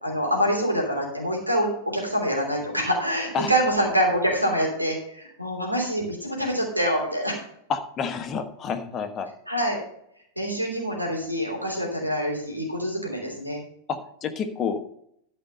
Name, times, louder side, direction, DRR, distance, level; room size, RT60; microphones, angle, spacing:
voice 1, 0.0-7.4 9.5-9.8 10.4-13.6, equal, 85° right, 0 dB, 3.1 m, -25 dB
voice 2, 7.7-9.3 13.9-14.9, left 6 dB, 30° left, 7 dB, 1.3 m, -29 dB
12.5 x 5.5 x 5.5 m, 0.71 s
figure-of-eight pair, 90°, 0 cm